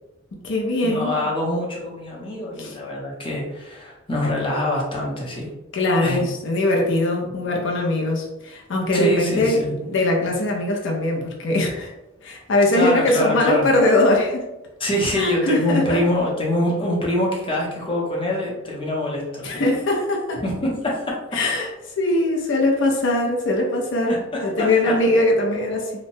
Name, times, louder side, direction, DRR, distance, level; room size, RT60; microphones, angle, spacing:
voice 1, 0.3-1.2 2.6-2.7 5.7-11.9 12.2-14.4 15.2-16.0 19.4-20.4 21.3-21.7 22.0-25.9, left 2 dB, 65° left, -1 dB, 0.5 m, -21 dB
voice 2, 0.8-5.5 6.0-6.2 8.9-9.7 12.7-13.7 14.8-19.6 20.4-21.2 24.1-25.0, left 1 dB, 25° left, -3 dB, 0.7 m, -24 dB
3.0 x 2.1 x 2.6 m, 0.99 s
head